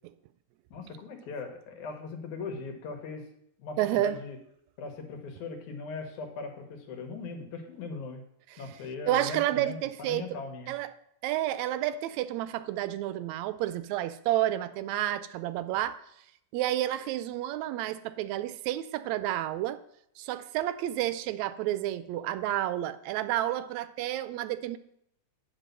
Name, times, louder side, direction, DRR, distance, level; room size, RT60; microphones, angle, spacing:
voice 1, 0.7-3.3 3.6-4.4 4.8-8.2 8.6-10.7, left 4 dB, 90° left, 4 dB, 2.8 m, -39 dB
voice 2, 3.8-4.2 9.1-10.3 10.7-10.9 11.2-16.0 16.5-19.8 20.2-24.8, right 13 dB, 80° right, 13 dB, 1.8 m, -30 dB
9.4 x 5.3 x 6.6 m, 0.74 s
omnidirectional pair, 3.3 m